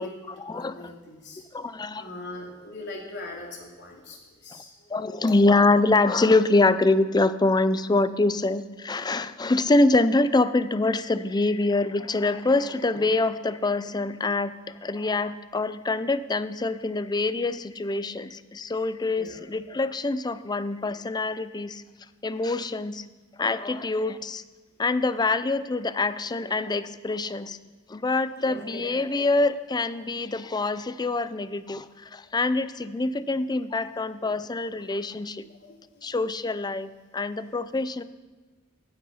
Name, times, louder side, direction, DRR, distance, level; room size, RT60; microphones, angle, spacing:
voice 1, 0.0-0.9 1.5-2.1 4.5-4.6 4.9-14.5 14.8-21.8 22.2-23.0 23.4-24.4 24.8-27.6 27.9-35.5 36.0-38.0, left 2 dB, 20° left, 14 dB, 0.5 m, -25 dB
voice 2, 0.5-1.4 2.0-4.7 19.2-19.4 20.8-20.9 27.4-27.5 28.5-28.8 34.2-34.4 35.4-36.1, left 2 dB, 55° left, -2 dB, 3.3 m, -41 dB
16.0 x 9.2 x 5.6 m, 1.3 s
head